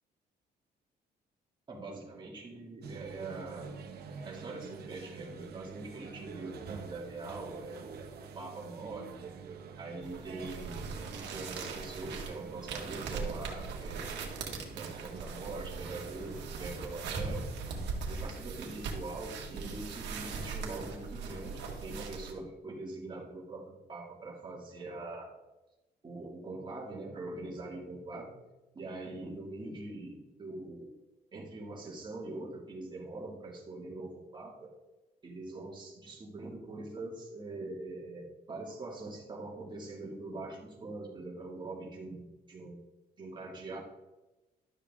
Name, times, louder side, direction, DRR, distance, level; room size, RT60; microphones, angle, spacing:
voice 1, 1.7-3.7 4.2-9.3 9.8-10.9 11.2-14.4 14.7-17.4 18.1-25.3 26.0-28.3 28.7-30.9 31.3-34.7 35.2-42.8 43.2-43.8, right 2 dB, 25° right, -3 dB, 2.4 m, -43 dB
sound 1, 2.8-17.9, right 5 dB, 60° right, 1.3 m, -47 dB
sound 2, 10.0-22.3, right 4 dB, 80° right, 1.9 m, -40 dB
12.0 x 6.8 x 3.7 m, 1.1 s
cardioid pair, 135°, 18 cm